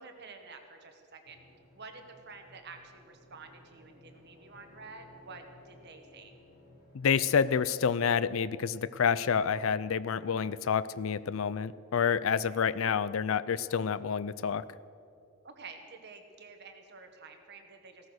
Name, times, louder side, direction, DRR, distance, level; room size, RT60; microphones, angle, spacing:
voice 1, 0.0-1.4 1.7-6.3 12.3-12.6 15.4-18.1, right 4 dB, 50° right, 5 dB, 1.6 m, -50 dB
sound 1, 1.2-9.7, left 1 dB, 45° left, 5.3 m, -58 dB
voice 2, 6.9-14.6, left 6 dB, 65° left, 17 dB, 0.4 m, -28 dB
16.0 x 13.5 x 6.4 m, 2.5 s
head